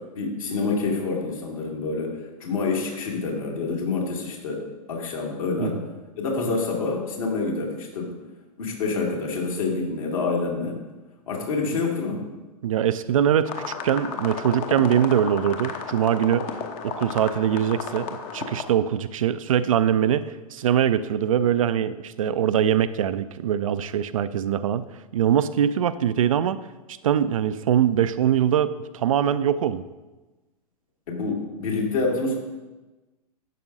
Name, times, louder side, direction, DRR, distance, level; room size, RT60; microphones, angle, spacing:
voice 1, 0.1-2.1 2.4-5.8 6.2-8.1 8.6-10.8 11.3-12.2 31.1-32.4, left 3 dB, 55° left, -1 dB, 2.2 m, -27 dB
voice 2, 12.6-16.5 16.8-24.9 25.1-26.6 26.9-29.8, right 9 dB, 55° right, 13 dB, 0.4 m, -22 dB
sound 1, 13.5-18.6, left 6 dB, 30° left, 0.9 m, -33 dB
11.5 x 7.4 x 2.6 m, 1.2 s
figure-of-eight pair, 105°, 20 cm